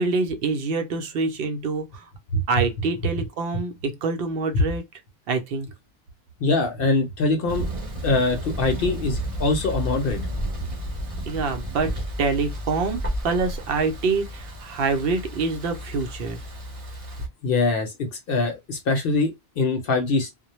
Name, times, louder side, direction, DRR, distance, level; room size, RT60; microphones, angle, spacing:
voice 1, 0.0-2.1 2.5-4.9 5.3-5.7 11.3-16.4, right 4 dB, 70° right, 0.8 m, -26 dB
voice 2, 6.4-7.7 8.0-10.2 17.4-20.3, left 3 dB, 65° left, 0.8 m, -23 dB
Thunder, 7.5-17.3, equal, 35° right, 0.8 m, -32 dB
2.1 x 2.0 x 2.9 m
omnidirectional pair, 1.1 m